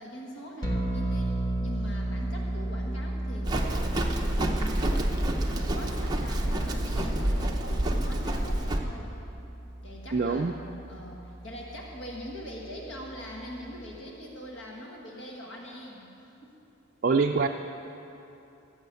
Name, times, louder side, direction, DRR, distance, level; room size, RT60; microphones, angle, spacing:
voice 1, 0.0-5.1 5.4-9.1 9.8-10.5 10.9-16.1 16.4-16.5, equal, 60° left, -1 dB, 1.6 m, -42 dB
sound 1, 0.6-14.0, right 1 dB, 20° left, 1.4 m, -35 dB
Livestock farm animals working animals, 3.4-8.8, right 1 dB, 20° right, 0.8 m, -28 dB
voice 2, 10.1-10.5 17.0-17.5, right 4 dB, 45° right, 3 dB, 0.4 m, -24 dB
15.0 x 7.0 x 8.2 m, 2.9 s
head